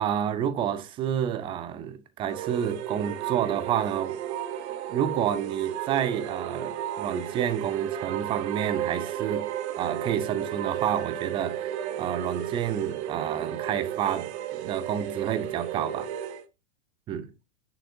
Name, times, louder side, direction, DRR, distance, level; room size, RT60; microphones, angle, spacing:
voice 1, 0.0-4.2 4.9-9.5 9.8-16.1 17.1-17.3, right 9 dB, 15° right, 0.4 m, -29 dB
sound 1, 2.3-16.5, right 10 dB, 55° right, 1.0 m, -33 dB
9.4 x 6.5 x 2.6 m
hypercardioid pair, 135°, 41 cm